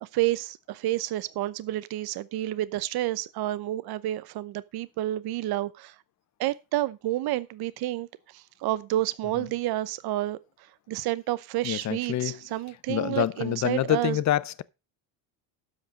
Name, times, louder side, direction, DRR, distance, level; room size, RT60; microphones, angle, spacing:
voice 1, 0.0-6.0 6.4-10.4 10.9-14.2, right 15 dB, 50° right, 0.8 m, -30 dB
voice 2, 11.6-12.4 12.9-14.6, left 12 dB, 35° left, 0.7 m, -27 dB
12.5 x 5.2 x 5.2 m
supercardioid pair, 100°, 47 cm